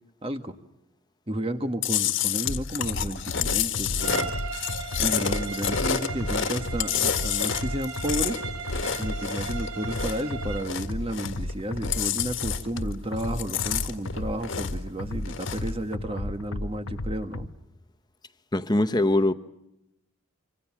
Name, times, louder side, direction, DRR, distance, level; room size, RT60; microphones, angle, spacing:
voice 1, 0.2-0.5 1.3-4.3 5.0-8.4 9.0-17.5, right 1 dB, 25° right, 1.6 m, -32 dB
Chewing mastication, 1.8-10.3 10.6-11.5 11.8-12.9 13.2-14.9 15.2-15.7, left 9 dB, 60° left, 1.8 m, -29 dB
sound 1, 2.4-17.5, left 1 dB, 80° left, 1.2 m, -34 dB
Bowed string instrument, 4.0-10.8, right 5 dB, 75° right, 4.8 m, -37 dB
voice 2, 18.5-19.3, left 1 dB, 20° left, 0.9 m, -22 dB
26.5 x 26.0 x 7.4 m
head